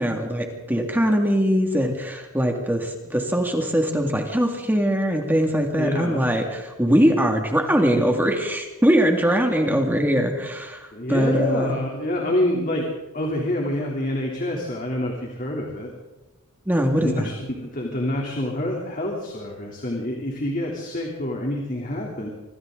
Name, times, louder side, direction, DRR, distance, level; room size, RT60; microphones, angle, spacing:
voice 1, 0.0-11.8 16.7-17.3, equal, 10° right, 2 dB, 2.2 m, -22 dB
voice 2, 5.7-6.3 10.9-12.9 13.1-15.9 16.9-22.3, left 1 dB, 40° left, -1 dB, 3.3 m, -27 dB
26.0 x 25.0 x 3.9 m, 1.1 s
head